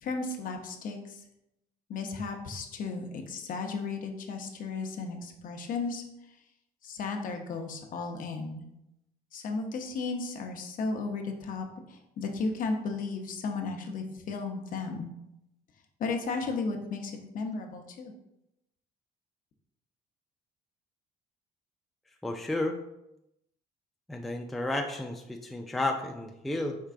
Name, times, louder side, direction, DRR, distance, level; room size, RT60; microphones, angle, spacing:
voice 1, 0.0-1.2 1.9-6.0 6.8-8.7 9.3-15.1 16.0-18.1, left 4 dB, 55° left, 4 dB, 0.7 m, -34 dB
voice 2, 22.2-22.8 24.1-26.8, left 2 dB, ahead, 3 dB, 0.3 m, -32 dB
4.5 x 3.5 x 2.4 m, 0.85 s
cardioid pair, 110°, 17 cm